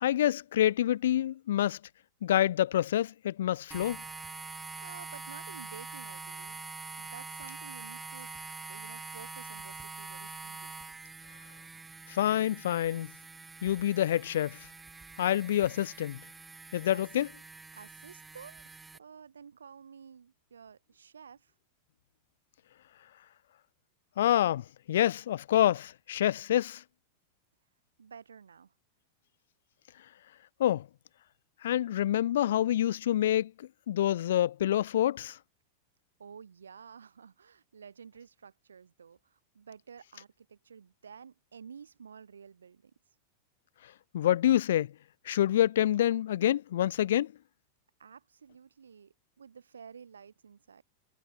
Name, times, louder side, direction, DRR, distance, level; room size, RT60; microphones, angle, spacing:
voice 1, 0.0-1.8 2.2-4.0 12.1-13.1 13.6-14.7 15.2-16.2 16.7-17.3 24.2-26.8 30.6-30.9 31.6-35.4 44.1-44.9 45.3-47.3, left 12 dB, 60° left, 0.3 m, -27 dB
sound 1, 3.7-19.0, right 4 dB, 10° right, 1.5 m, -45 dB
voice 2, 4.8-11.0 16.9-17.1 17.7-21.5 28.0-28.7 36.2-42.9 48.0-50.8, right 6 dB, 70° right, 2.6 m, -51 dB
figure-of-eight pair, 90°, 0 cm